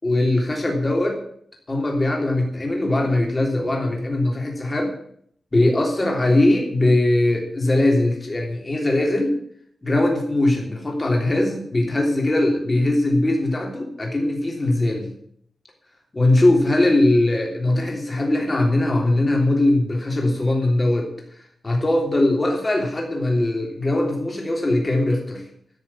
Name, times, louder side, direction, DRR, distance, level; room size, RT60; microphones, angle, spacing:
voice 1, 0.0-1.2 1.7-4.9 5.5-9.3 9.8-15.1 16.1-21.1 21.6-25.4, left 1 dB, 20° left, 1 dB, 3.2 m, -20 dB
13.0 x 6.7 x 8.5 m, 0.64 s
wide cardioid pair, 180°, 0 cm